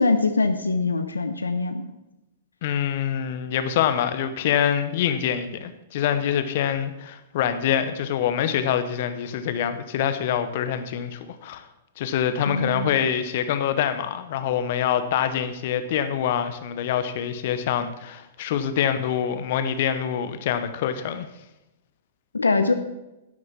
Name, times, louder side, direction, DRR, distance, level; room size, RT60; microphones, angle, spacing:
voice 1, 0.0-1.9 12.5-12.9 22.3-22.7, left 3 dB, 90° left, 8 dB, 0.9 m, -23 dB
voice 2, 2.6-11.7 12.0-21.3, left 9 dB, 55° left, 10 dB, 1.0 m, -25 dB
11.5 x 7.8 x 5.8 m, 0.96 s
hypercardioid pair, 110°, 0 cm